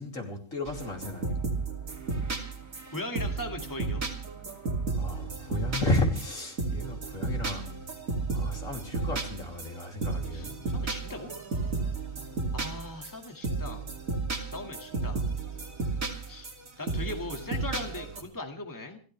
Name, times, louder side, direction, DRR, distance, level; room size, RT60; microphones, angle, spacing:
voice 1, 0.0-1.4 4.9-7.9 8.3-10.7, left 2 dB, 75° left, 2 dB, 3.4 m, -33 dB
sound 1, 0.7-18.2, right 3 dB, 85° right, 3.1 m, -33 dB
voice 2, 2.9-4.0 10.3-11.4 12.5-13.9 14.5-15.2 16.3-16.5 16.8-19.0, left 2 dB, 15° left, 3 dB, 2.0 m, -39 dB
29.5 x 13.0 x 3.3 m, 0.40 s
omnidirectional pair, 1.4 m